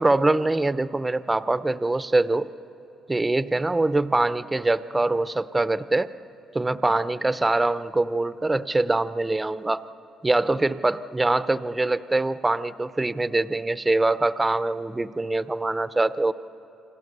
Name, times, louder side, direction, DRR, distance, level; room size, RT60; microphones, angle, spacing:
voice 1, 0.0-2.5 3.1-6.1 6.5-9.8 10.2-16.3, right 2 dB, 15° right, 14 dB, 0.6 m, -23 dB
28.5 x 25.0 x 6.7 m, 2.9 s
cardioid pair, 90°, 0 cm